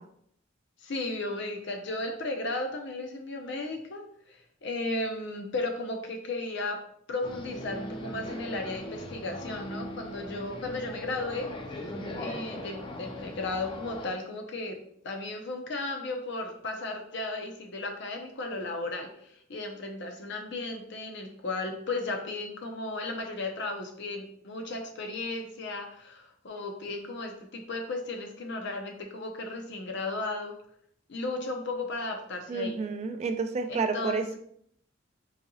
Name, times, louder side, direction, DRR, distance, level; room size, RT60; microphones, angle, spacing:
voice 1, 0.8-6.8 7.1-11.5 12.1-14.8 15.0-30.6 31.1-32.8 33.7-34.4, left 2 dB, 65° left, 4 dB, 0.6 m, -35 dB
sound 1, 7.2-14.1, left 1 dB, 25° left, 0.5 m, -40 dB
voice 2, 32.5-34.4, right 4 dB, 35° right, 7 dB, 0.3 m, -30 dB
4.0 x 2.8 x 2.7 m, 0.67 s
head